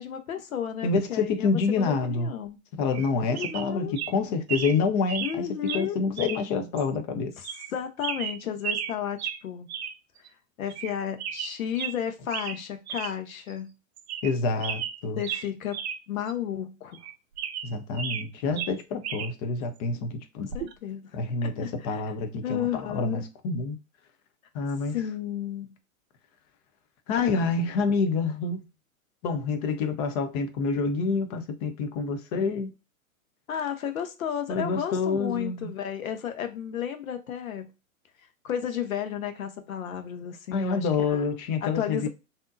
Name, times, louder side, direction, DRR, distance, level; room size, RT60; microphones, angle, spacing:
voice 1, 0.0-2.6 3.3-4.0 5.2-6.0 7.7-9.7 10.6-13.7 15.2-15.8 16.1-17.0 20.4-21.0 21.4-22.0 22.4-23.2 24.9-25.7 33.5-37.7 38.4-41.2 41.6-42.1, left 9 dB, 70° left, 0.9 m, -33 dB
voice 2, 0.8-2.3 2.8-5.5 5.7-7.3 14.2-15.2 17.6-20.5 21.1-23.8 24.5-25.0 27.1-28.6 29.2-32.7 34.5-35.7 40.5-42.1, left 4 dB, 30° left, 0.6 m, -27 dB
sound 1, 2.9-3.1 3.4-3.7 4.0-4.1 4.5-4.8 5.1-5.4 5.7-5.9 6.2-6.4 6.8-6.9 7.4-7.7 8.0-8.9 9.2-9.4 9.7-10.0 10.3-10.4 10.7-10.9 11.2-12.0 12.3-12.6 12.9-13.1 13.5-13.6 14.0-14.4 14.6-16.0 16.3-16.4 16.9-18.3 18.6-19.3 20.5-20.7, right 8 dB, 50° right, 0.6 m, -34 dB
3.5 x 2.7 x 2.5 m
hypercardioid pair, 120°, 42 cm